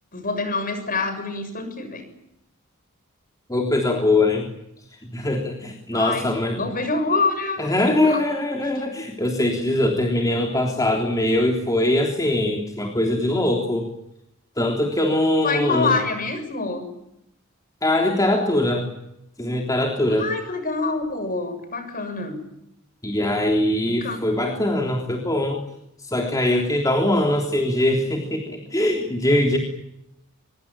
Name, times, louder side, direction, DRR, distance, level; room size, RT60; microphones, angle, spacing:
voice 1, 0.1-2.0 5.9-7.6 7.9-8.2 8.6-8.7 15.4-16.8 20.1-22.4 23.8-24.2, left 3 dB, 40° left, 9 dB, 6.7 m, -26 dB
voice 2, 3.5-4.5 5.1-6.6 7.6-13.9 14.6-16.0 17.8-18.9 19.4-20.3 23.0-25.6 26.0-29.6, left 1 dB, 15° left, 1 dB, 3.4 m, -22 dB
24.5 x 22.5 x 8.8 m, 0.82 s
head